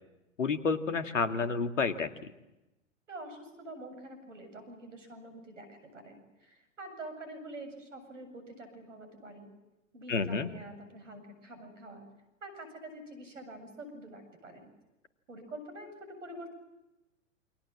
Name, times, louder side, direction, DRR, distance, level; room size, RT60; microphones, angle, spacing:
voice 1, 0.4-2.3 10.1-10.5, left 4 dB, 75° left, 9 dB, 2.2 m, -30 dB
voice 2, 3.1-9.5 9.9-12.1 12.4-14.7 15.3-16.5, right 1 dB, 75° right, 9 dB, 7.9 m, -46 dB
29.0 x 24.5 x 7.6 m, 0.99 s
figure-of-eight pair, 100°, 38 cm